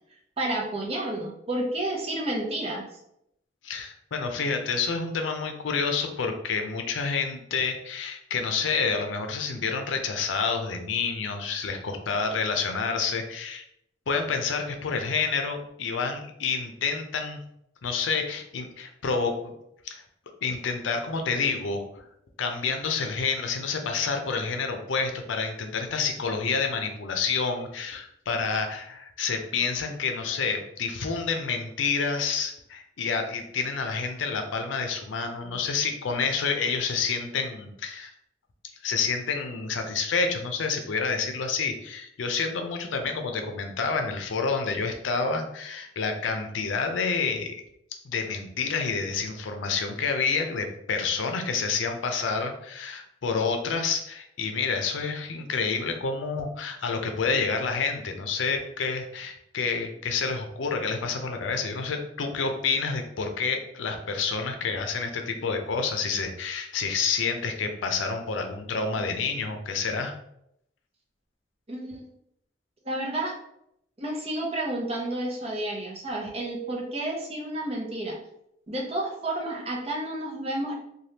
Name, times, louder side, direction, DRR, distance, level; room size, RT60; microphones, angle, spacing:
voice 1, 0.4-2.8 71.7-72.1 72.8-73.4 74.0-78.2 78.7-80.7, right 1 dB, 35° right, -1 dB, 0.7 m, -30 dB
voice 2, 3.6-13.6 14.1-17.4 17.8-19.5 19.8-20.0 20.4-22.0 22.4-38.1 38.8-47.5 48.0-70.1, left 5 dB, 90° left, 5 dB, 0.5 m, -28 dB
3.3 x 2.3 x 2.8 m, 0.77 s
head